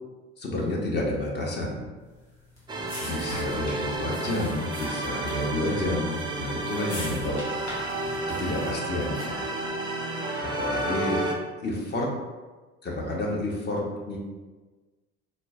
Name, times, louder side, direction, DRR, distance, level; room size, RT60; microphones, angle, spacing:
voice 1, 0.4-1.9 3.0-7.4 7.6-7.9 8.4-9.5 10.4-11.3 11.6-12.1 12.8-14.2, left 1 dB, 30° left, -2 dB, 0.8 m, -30 dB
sound 1, 2.1-9.6, left 1 dB, 85° left, 0.9 m, -41 dB
sound 2, 2.7-11.4, right 2 dB, 15° right, 0.4 m, -31 dB
4.2 x 2.1 x 2.4 m, 1.3 s
figure-of-eight pair, 60°, 34 cm